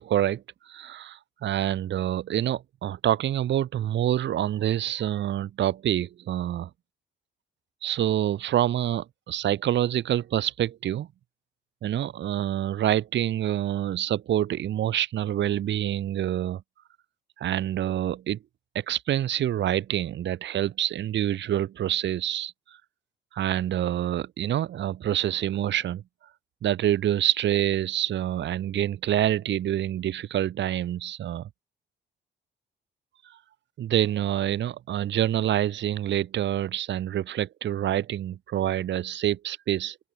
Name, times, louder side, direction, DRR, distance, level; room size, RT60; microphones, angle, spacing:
voice 1, 0.0-6.7 7.8-11.1 11.8-16.6 17.4-18.4 18.7-22.5 23.3-26.0 26.6-31.5 33.2-33.4 33.8-40.0, right 11 dB, 65° right, 1.2 m, -27 dB
cardioid pair, 90°, 20 cm